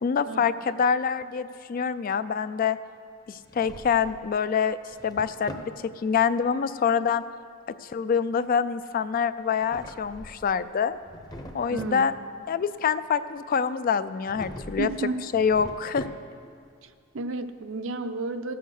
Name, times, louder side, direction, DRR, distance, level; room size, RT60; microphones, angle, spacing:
voice 1, 0.0-2.8 3.3-4.8 5.0-5.5 5.8-7.2 7.8-11.0 11.5-12.2 12.5-14.9 15.3-16.1, left 6 dB, 45° left, 13 dB, 0.3 m, -25 dB
Drawer open or close, 3.3-4.3 4.7-5.8 9.4-10.5 10.9-12.0 14.2-14.9 15.3-16.5, left 1 dB, 20° left, 0.7 m, -42 dB
voice 2, 11.7-12.1 14.8-15.2 16.8-18.5, right 3 dB, 65° right, 9 dB, 0.6 m, -32 dB
13.5 x 7.8 x 6.4 m, 2.2 s
head